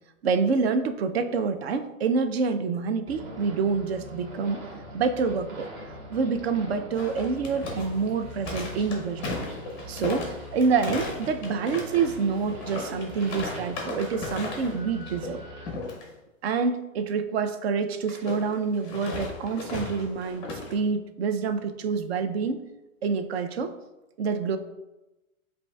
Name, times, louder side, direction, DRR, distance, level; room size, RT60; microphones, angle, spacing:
voice 1, 0.2-4.6 4.9-5.7 6.1-9.4 9.9-15.4 16.4-22.6 23.0-23.7 24.2-24.6, right 5 dB, 50° right, 9 dB, 0.4 m, -27 dB
sound 1, 3.1-15.7, equal, 35° right, 0.8 m, -42 dB
sound 2, 6.9-14.8 15.1-15.3 15.7-16.0 18.1-20.7, left 3 dB, 10° left, 0.6 m, -36 dB
7.9 x 2.6 x 2.2 m, 1.0 s
hypercardioid pair, 155°, 42 cm